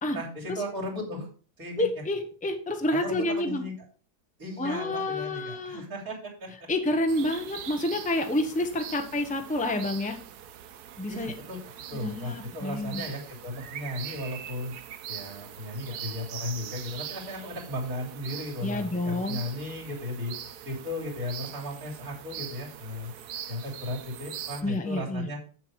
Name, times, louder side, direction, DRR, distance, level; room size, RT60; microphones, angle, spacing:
voice 1, 0.1-1.3 1.6-2.0 2.9-3.7 4.4-6.7 11.1-11.6 11.9-14.8 15.1-20.3 20.6-23.1 23.5-25.4, left 1 dB, 60° right, -3 dB, 3.7 m, -36 dB
voice 2, 1.8-3.6 4.6-5.8 6.7-10.2 11.0-11.3 11.9-13.0 18.6-19.4 24.6-25.3, left 1 dB, 5° left, 5 dB, 1.0 m, -29 dB
sound 1, 7.1-24.6, right 10 dB, 80° right, 1.3 m, -42 dB
8.0 x 7.6 x 4.7 m, 0.40 s
omnidirectional pair, 1.7 m